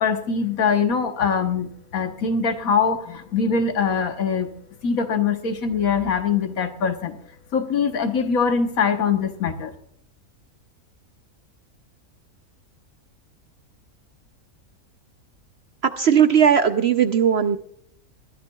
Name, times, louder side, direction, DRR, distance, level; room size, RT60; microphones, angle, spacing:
voice 1, 0.0-4.5 4.8-7.2 7.5-9.7, left 6 dB, 70° left, 7 dB, 1.5 m, -23 dB
voice 2, 16.0-17.6, right 8 dB, 60° right, 9 dB, 0.7 m, -17 dB
21.5 x 13.5 x 2.3 m, 0.68 s
omnidirectional pair, 1.6 m